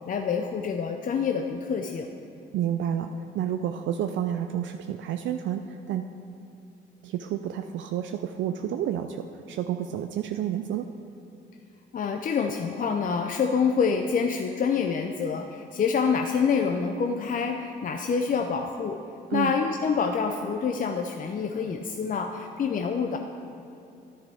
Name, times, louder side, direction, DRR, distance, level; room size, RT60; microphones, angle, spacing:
voice 1, 0.1-2.1 11.9-19.0 19.3-23.2, left 6 dB, 45° left, 4 dB, 0.5 m, -27 dB
voice 2, 2.5-6.0 7.0-10.9 19.3-19.5, right 10 dB, 70° right, 6 dB, 0.4 m, -30 dB
10.5 x 9.9 x 3.5 m, 2.6 s
cardioid pair, 90°, 20 cm